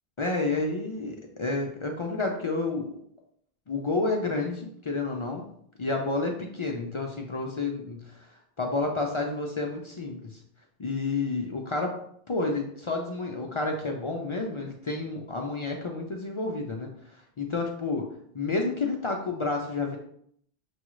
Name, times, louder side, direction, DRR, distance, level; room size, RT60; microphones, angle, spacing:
voice 1, 0.2-3.0 3.7-5.4 5.8-8.3 8.6-10.4 10.8-12.0 12.3-18.1 18.3-20.0, left 3 dB, 50° left, 1 dB, 0.4 m, -30 dB
6.1 x 2.4 x 3.0 m, 0.67 s
omnidirectional pair, 1.0 m